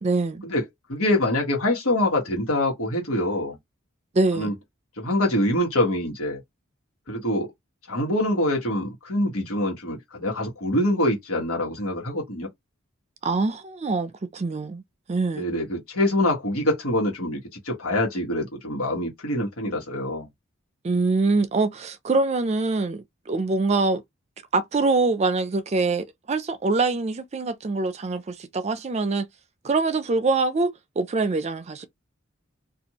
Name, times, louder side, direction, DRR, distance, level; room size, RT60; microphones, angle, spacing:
voice 1, 0.0-0.4 4.1-4.5 13.2-14.8 15.1-15.5 20.8-24.0 24.5-29.3 29.6-31.9, right 3 dB, 30° right, 0.4 m, -24 dB
voice 2, 0.9-3.6 4.4-4.5 5.0-6.4 7.1-7.5 7.9-12.5 15.4-20.3, left 1 dB, 90° left, 1.4 m, -25 dB
2.6 x 2.5 x 2.9 m
head